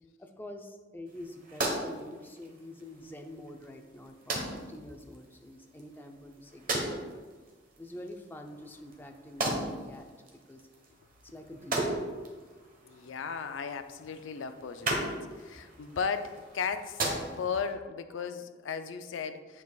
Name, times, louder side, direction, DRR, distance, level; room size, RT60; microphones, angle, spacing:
voice 1, 0.2-7.2 7.8-9.6 9.9-10.6 11.2-12.0 17.3-17.4, left 1 dB, 10° left, 3 dB, 0.5 m, -46 dB
sound 1, 1.1-17.7, right 2 dB, 45° right, 1.1 m, -38 dB
voice 2, 12.8-19.6, left 6 dB, 85° left, 9 dB, 0.4 m, -36 dB
8.5 x 5.3 x 2.3 m, 1.4 s
head